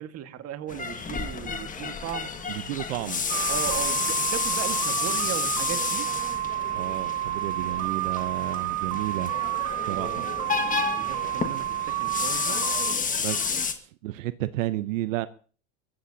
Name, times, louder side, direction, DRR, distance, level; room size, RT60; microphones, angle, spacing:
voice 1, 0.0-2.5 3.5-6.1 9.8-13.6, right 10 dB, 40° right, 1.8 m, -37 dB
sound 1, 0.7-13.7, left 5 dB, 20° left, 1.7 m, -31 dB
voice 2, 2.5-3.2 6.7-9.3 9.8-10.3 13.2-15.3, right 15 dB, 85° right, 0.8 m, -32 dB
sound 2, 3.3-13.0, right 15 dB, 65° right, 1.2 m, -30 dB
23.0 x 15.5 x 2.8 m
supercardioid pair, 120°, 38 cm